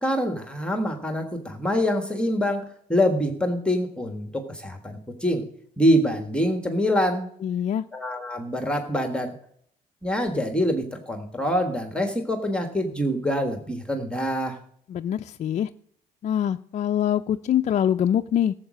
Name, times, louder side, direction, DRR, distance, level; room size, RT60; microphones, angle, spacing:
voice 1, 0.0-5.4 5.8-7.3 7.9-9.3 10.0-14.6, equal, 5° left, 5 dB, 1.4 m, -25 dB
voice 2, 7.4-7.9 14.9-15.7 16.2-18.5, left 10 dB, 45° left, 6 dB, 0.4 m, -24 dB
13.0 x 7.3 x 6.3 m, 0.65 s
cardioid pair, 110°, 17 cm